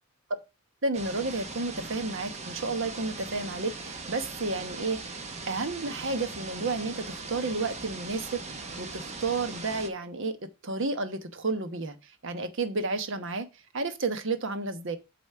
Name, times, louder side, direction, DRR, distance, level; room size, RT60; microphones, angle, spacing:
voice 1, 0.8-13.5 13.7-15.0, right 3 dB, 60° right, 1.1 m, -32 dB
sound 1, 0.9-9.9, right 3 dB, 35° right, 1.2 m, -40 dB
8.3 x 4.1 x 6.7 m
head